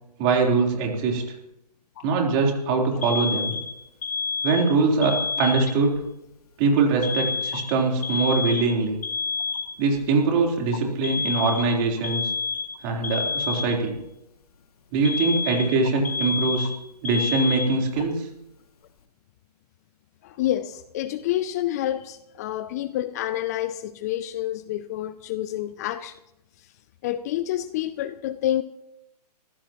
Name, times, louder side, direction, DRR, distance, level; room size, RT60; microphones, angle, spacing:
voice 1, 0.2-1.2 2.0-3.5 4.4-6.1 6.6-9.0 9.8-12.3 12.8-13.9 14.9-16.7 17.0-18.3, right 4 dB, 30° right, 0 dB, 3.8 m, -22 dB
Alarm, 3.0-6.0 7.0-10.0 11.0-14.0 15.0-18.0, left 5 dB, 60° left, 2.4 m, -29 dB
voice 2, 20.2-26.2 26.6-26.7 27.0-28.6, left 13 dB, 25° left, 14 dB, 0.5 m, -28 dB
26.0 x 15.5 x 3.0 m, 0.85 s
hypercardioid pair, 145°, 21 cm